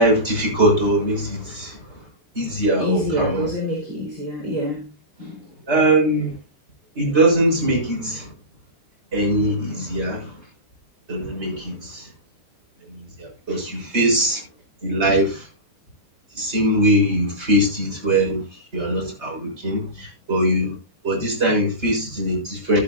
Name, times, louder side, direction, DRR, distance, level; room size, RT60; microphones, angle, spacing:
voice 1, 0.0-2.0 2.3-3.5 5.7-6.4 6.9-8.3 9.1-10.4 11.1-12.1 12.9-14.4 14.8-15.5 16.3-20.8 21.0-22.8, right 1 dB, 15° right, 6.4 m, -21 dB
voice 2, 2.8-4.9 5.2-5.4, equal, 30° right, 4.0 m, -26 dB
13.0 x 13.0 x 2.8 m
omnidirectional pair, 5.6 m